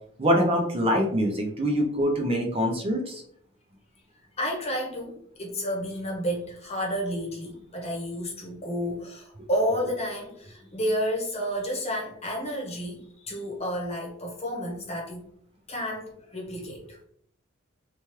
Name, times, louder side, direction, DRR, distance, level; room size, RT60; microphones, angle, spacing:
voice 1, 0.2-3.2, equal, 25° right, 1 dB, 0.4 m, -24 dB
voice 2, 4.4-15.3 15.7-17.0, equal, 30° left, -2 dB, 0.9 m, -31 dB
2.9 x 2.3 x 3.0 m, 0.66 s
head